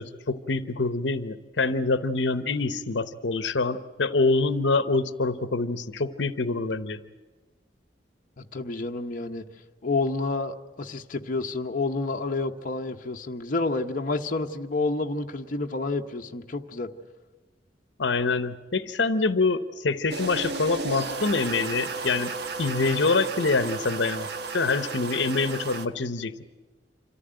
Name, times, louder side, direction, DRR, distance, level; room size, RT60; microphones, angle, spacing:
voice 1, 0.0-7.0 18.0-22.3 22.6-24.3 24.5-26.4, left 3 dB, 75° left, 12 dB, 0.9 m, -25 dB
voice 2, 8.4-9.5 9.8-16.9, left 3 dB, 45° left, 3 dB, 0.9 m, -29 dB
sound 1, 20.1-25.9, right 4 dB, 60° right, 1.1 m, -33 dB
27.0 x 14.0 x 8.9 m, 1.3 s
head